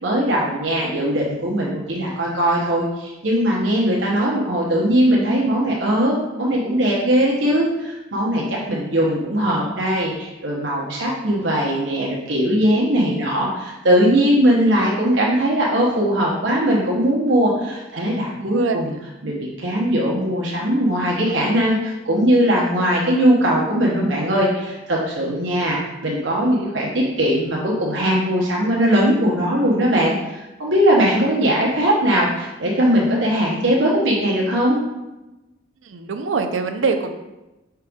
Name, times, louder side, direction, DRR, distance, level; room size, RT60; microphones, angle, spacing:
voice 1, 0.0-18.9 19.2-34.8, equal, 70° right, -4 dB, 1.2 m, -20 dB
voice 2, 18.1-18.8 25.2-25.4 35.8-37.1, right 4 dB, 85° right, 7 dB, 0.6 m, -24 dB
5.8 x 4.6 x 3.6 m, 1.0 s
head